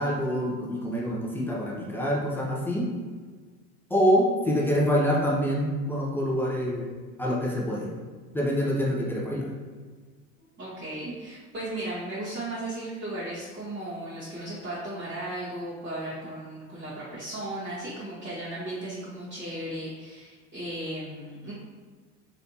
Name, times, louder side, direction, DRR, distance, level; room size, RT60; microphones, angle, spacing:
voice 1, 0.0-2.8 3.9-6.9 7.2-7.9 8.3-9.5, equal, 5° left, -4 dB, 0.5 m, -26 dB
voice 2, 10.6-21.5, right 1 dB, 20° right, -11 dB, 1.3 m, -36 dB
3.2 x 2.9 x 2.7 m, 1.5 s
hypercardioid pair, 90°, 47 cm